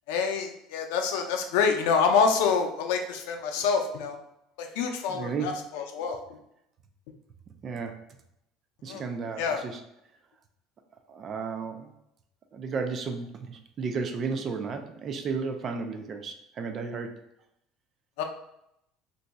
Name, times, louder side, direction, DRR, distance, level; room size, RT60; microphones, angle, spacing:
voice 1, 0.1-4.2 4.6-6.2 8.9-9.0 9.4-9.6 18.2-18.3, left 5 dB, 80° left, 4 dB, 0.5 m, -26 dB
voice 2, 5.1-5.6 7.6-8.0 8.8-9.8 11.1-11.9 12.5-17.2, right 5 dB, 30° right, 5 dB, 0.3 m, -33 dB
2.5 x 2.2 x 4.0 m, 0.80 s
cardioid pair, 170°, 0 cm